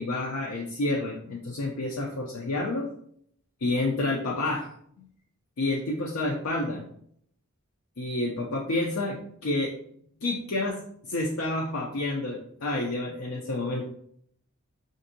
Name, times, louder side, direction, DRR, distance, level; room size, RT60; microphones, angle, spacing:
voice 1, 0.0-2.9 3.6-4.7 5.0-5.1 5.6-6.9 8.0-9.7 10.2-13.9, left 2 dB, 70° left, -1 dB, 0.5 m, -29 dB
5.1 x 2.6 x 2.6 m, 0.66 s
head